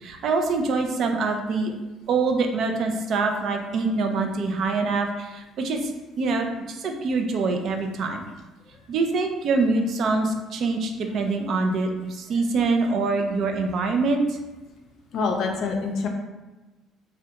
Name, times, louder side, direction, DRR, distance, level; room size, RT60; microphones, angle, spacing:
voice 1, 0.0-1.7 2.1-5.9 6.2-8.2 8.9-14.4, right 3 dB, 50° right, 4 dB, 0.4 m, -24 dB
voice 2, 15.1-16.1, left 4 dB, 60° left, 3 dB, 0.4 m, -25 dB
2.8 x 2.2 x 3.4 m, 1.1 s
cardioid pair, 140°, 0 cm